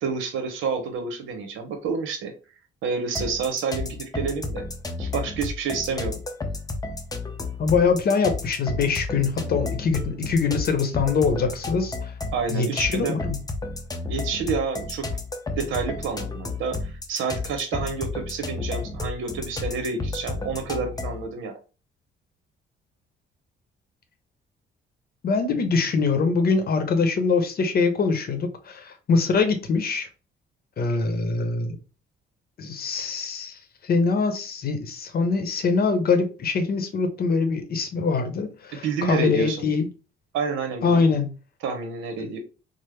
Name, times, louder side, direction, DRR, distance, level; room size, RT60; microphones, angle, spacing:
voice 1, 0.0-2.3 2.8-4.6 5.0-6.2 12.3-13.2 14.1-15.1 15.6-21.6 38.8-39.6 40.3-41.1 41.6-42.4, right 5 dB, 85° right, 0.8 m, -29 dB
sound 1, 3.1-21.3, left 3 dB, 20° left, 0.5 m, -32 dB
voice 2, 7.6-12.1 12.5-13.4 25.2-30.1 30.8-31.8 32.6-33.6 33.8-39.9 40.8-41.3, left 4 dB, 50° left, 0.8 m, -23 dB
3.3 x 2.0 x 3.1 m
cardioid pair, 90°, 20 cm